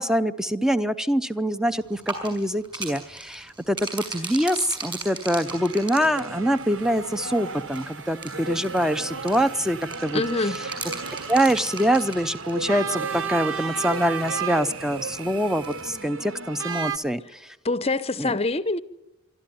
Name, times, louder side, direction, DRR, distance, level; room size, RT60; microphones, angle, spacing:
voice 1, 0.0-10.2 11.3-17.2 18.2-18.3, equal, 5° right, 0.7 m, -24 dB
sound 1, 1.8-16.0, right 3 dB, 25° right, 5.7 m, -39 dB
sound 2, 5.4-17.0, right 5 dB, 65° right, 1.1 m, -34 dB
voice 2, 10.1-10.6 17.6-18.8, left 3 dB, 30° left, 0.8 m, -25 dB
24.5 x 13.0 x 9.3 m
head